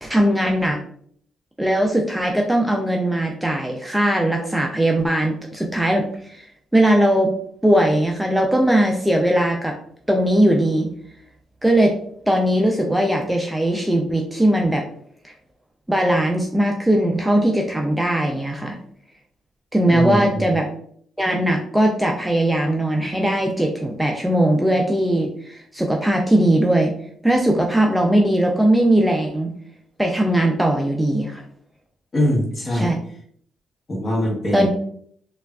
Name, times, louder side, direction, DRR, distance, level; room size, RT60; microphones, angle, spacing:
voice 1, 0.0-0.8 1.6-6.5 6.7-7.3 7.6-9.8 10.1-10.9 11.6-11.9 12.3-14.8 15.2-15.3 15.9-18.8 19.7-20.7 21.2-26.9 27.2-29.5 30.0-31.4 32.7-33.0 34.5-34.7, right 1 dB, 5° right, 1 dB, 0.4 m, -19 dB
voice 2, 19.8-20.5 32.1-32.9 33.9-34.7, equal, 35° left, -2 dB, 1.1 m, -22 dB
3.3 x 2.3 x 2.2 m, 0.62 s
cardioid pair, 90°, 0 cm